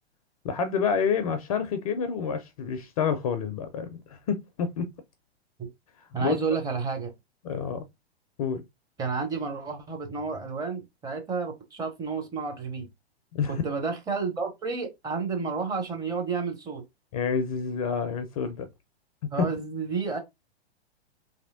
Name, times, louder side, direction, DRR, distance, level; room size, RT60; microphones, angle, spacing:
voice 1, 0.4-4.9 6.2-6.4 7.4-7.8 8.4-8.6 13.3-13.5 17.1-18.7 19.2-19.5, left 6 dB, 35° left, 0.4 m, -28 dB
voice 2, 6.1-7.1 9.0-12.9 13.5-16.8 19.3-20.2, right 5 dB, 10° right, 0.6 m, -31 dB
3.1 x 2.7 x 2.4 m
figure-of-eight pair, 105°, 32 cm